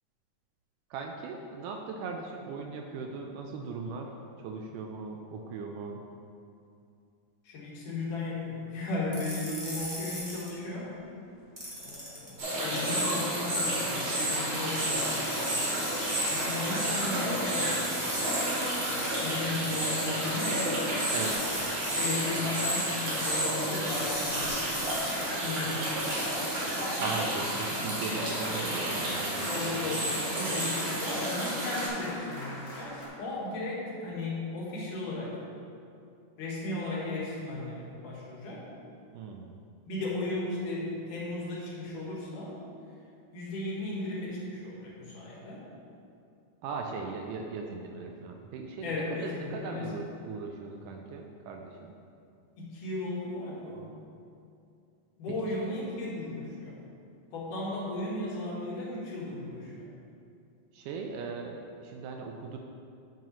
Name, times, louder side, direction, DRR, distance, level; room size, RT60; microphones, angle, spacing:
voice 1, 0.9-4.1 4.4-6.0 21.1-21.5 27.0-30.1 39.1-39.6 46.6-51.9 55.6-55.7 60.7-62.6, right 4 dB, 85° right, 2 dB, 2.1 m, -39 dB
voice 2, 7.4-10.9 11.8-17.8 18.6-20.7 21.9-24.5 25.4-26.0 29.5-35.4 36.4-38.6 39.9-42.5 43.3-45.6 48.8-49.9 52.6-53.9 55.2-56.7 57.3-59.9, left 2 dB, 75° left, -5 dB, 3.0 m, -36 dB
sound 1, 9.1-10.5 11.6-13.3 14.5-16.8 17.7-19.9 21.1-22.1 23.0-25.2 26.0-27.2, equal, 10° right, 1.3 m, -39 dB
sound 2, 12.4-31.9, right 1 dB, 55° right, 2.9 m, -31 dB
sound 3, 14.2-33.1, left 1 dB, 30° left, 0.9 m, -42 dB
8.9 x 8.3 x 3.0 m, 2.5 s
omnidirectional pair, 3.7 m